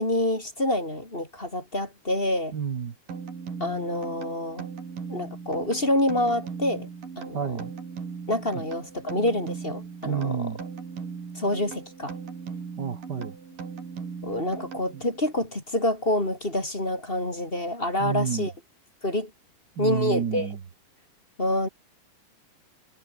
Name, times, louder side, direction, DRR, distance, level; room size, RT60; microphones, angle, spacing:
voice 1, 0.0-2.5 3.6-4.7 5.1-6.9 7.2-7.5 8.3-10.5 11.3-12.1 14.2-18.5 19.0-19.3 19.8-20.5 21.4-21.7, left 1 dB, 15° left, 3.7 m, -27 dB
voice 2, 2.5-2.9 7.3-7.7 8.5-8.6 10.0-10.6 12.8-13.4 14.9-15.0 18.0-18.5 19.8-20.6, right 7 dB, 40° right, 1.7 m, -29 dB
sound 1, 3.1-15.3, right 5 dB, 80° right, 6.3 m, -39 dB
omnidirectional pair, 3.8 m